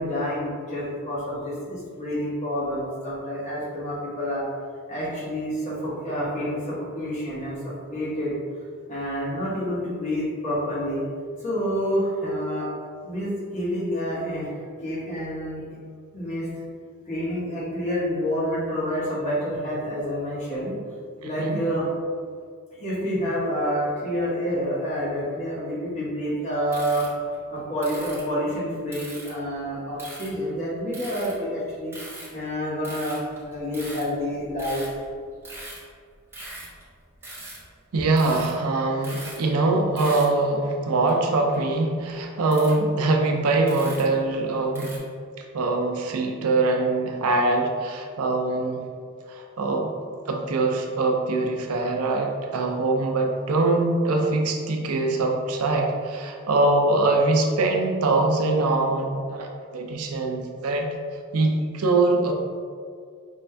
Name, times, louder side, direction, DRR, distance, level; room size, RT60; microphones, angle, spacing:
voice 1, 0.0-4.4 4.9-8.3 8.9-11.0 11.4-12.7 13.0-14.5 14.8-15.6 16.1-16.5 17.1-20.7 21.2-21.9 22.7-27.1 27.5-32.0 32.3-34.8, equal, 35° left, -8 dB, 1.4 m, -28 dB
voice 2, 21.2-21.6 37.9-45.0 45.5-48.8 49.3-49.9 50.3-60.9 61.3-62.3, right 2 dB, 80° right, 2 dB, 0.6 m, -23 dB
sound 1, 26.7-28.2 28.9-29.3 30.0-30.5 30.9-31.6 31.9-32.5 32.8-35.9 36.2-36.9 37.2-37.6 38.0-38.6 38.9-39.5 39.8-40.4 41.1-41.2 41.5-42.8 43.1-43.2 43.5-44.2 44.8-45.0, right 2 dB, 10° right, 1.0 m, -41 dB
5.3 x 2.5 x 3.3 m, 2.1 s
head